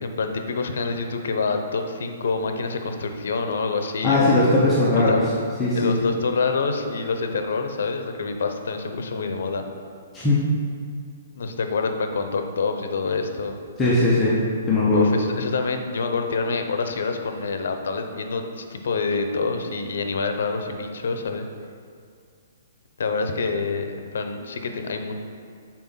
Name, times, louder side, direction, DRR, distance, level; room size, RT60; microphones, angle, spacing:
voice 1, 0.0-4.5 4.9-5.3 5.7-9.6 11.3-13.5 14.9-21.4 23.0-25.1, left 4 dB, 70° left, 6 dB, 0.7 m, -26 dB
voice 2, 4.0-5.2 5.6-6.0 10.1-10.5 13.8-14.4 14.7-15.1, left 2 dB, 10° left, -7 dB, 0.8 m, -19 dB
6.0 x 4.3 x 5.6 m, 2.2 s
hypercardioid pair, 170°, 0 cm